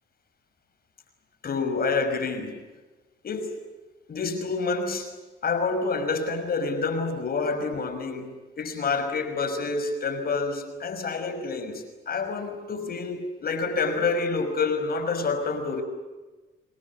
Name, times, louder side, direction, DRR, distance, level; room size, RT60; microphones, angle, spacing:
voice 1, 1.4-2.6 3.2-3.6 4.1-5.1 5.4-15.8, left 4 dB, 50° left, 5.9 m, -28 dB
27.0 x 20.5 x 8.7 m
cardioid pair, 90°, 20 cm